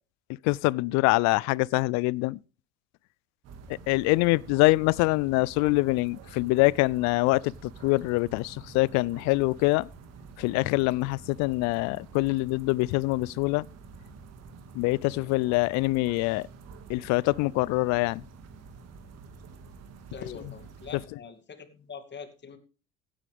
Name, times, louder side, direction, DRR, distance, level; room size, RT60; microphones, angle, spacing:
voice 1, 0.4-2.4 3.9-9.9 10.4-13.7 14.7-16.5 16.9-18.2, left 23 dB, 65° left, 0.5 m, -24 dB
sound 1, 3.4-21.1, right 5 dB, 55° right, 2.2 m, -48 dB
voice 2, 20.1-22.6, left 6 dB, 35° left, 2.6 m, -44 dB
15.5 x 10.0 x 3.5 m
hypercardioid pair, 75°, 30 cm